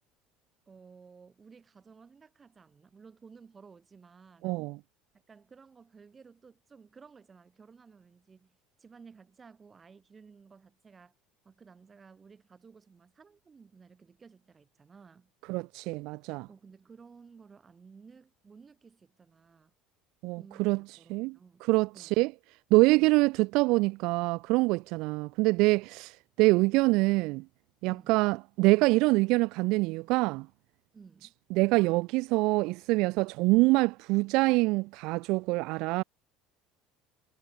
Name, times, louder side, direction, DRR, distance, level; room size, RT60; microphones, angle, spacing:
voice 1, 0.7-4.7 5.3-11.1 11.4-15.3 16.5-19.7 20.4-21.7 21.9-22.2 23.0-23.2 27.9-28.2 30.9-31.3, right 5 dB, 25° right, 3.8 m, -55 dB
voice 2, 4.4-4.7 15.5-16.5 20.2-20.8 21.1-22.3 22.7-27.4 27.8-30.5 31.5-36.0, right 23 dB, 70° right, 0.3 m, -25 dB
cardioid pair, 130°, 0 cm